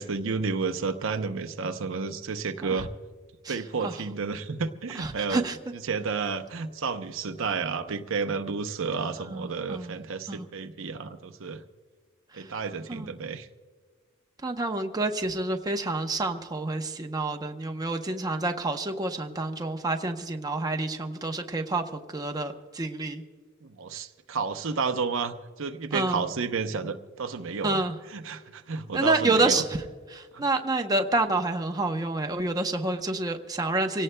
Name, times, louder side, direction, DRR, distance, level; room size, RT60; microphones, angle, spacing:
voice 1, 0.0-2.9 3.5-5.4 5.9-11.6 12.3-13.5 23.6-27.8 28.1-29.6 30.3-30.4, right 5 dB, 65° right, 7 dB, 0.7 m, -31 dB
voice 2, 4.9-5.6 9.3-10.0 10.3-10.5 12.3-12.5 12.9-13.1 14.4-23.2 25.9-26.3 27.6-28.0 28.9-29.8 30.1-34.0, right 2 dB, 20° right, 3 dB, 0.8 m, -28 dB
25.5 x 17.5 x 2.2 m, 1.5 s
head